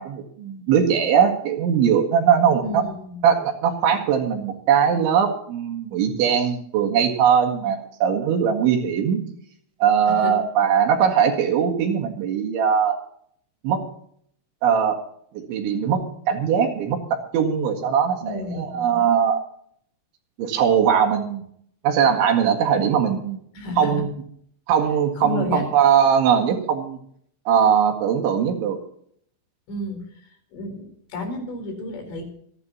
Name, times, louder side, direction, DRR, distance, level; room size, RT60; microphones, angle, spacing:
voice 1, 0.0-2.8 3.2-9.2 9.8-13.0 13.6-13.8 14.6-15.0 15.3-19.4 20.4-21.4 21.8-23.4 23.8-24.1 24.7-27.0 27.5-28.8, right 7 dB, 70° right, 4 dB, 4.1 m, -20 dB
voice 2, 2.6-3.2 10.1-10.3 18.2-19.0 23.5-24.0 25.2-25.7 29.7-32.3, left 1 dB, 60° left, 4 dB, 6.1 m, -31 dB
26.5 x 11.0 x 2.9 m, 0.64 s
omnidirectional pair, 5.9 m